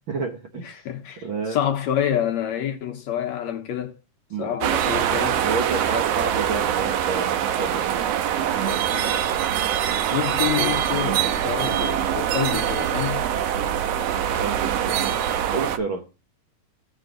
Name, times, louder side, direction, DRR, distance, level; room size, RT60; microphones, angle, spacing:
voice 1, 0.1-0.8 1.2-1.6 4.3-4.5 5.3-8.0 14.3-16.0, right 4 dB, 60° right, 1.3 m, -30 dB
voice 2, 0.6-4.0 4.4-5.4 8.6-9.4 10.1-13.2, left 10 dB, 70° left, 1.9 m, -28 dB
sound 1, 4.6-15.8, right 10 dB, 75° right, 1.5 m, -24 dB
16.0 x 5.9 x 3.8 m
omnidirectional pair, 3.7 m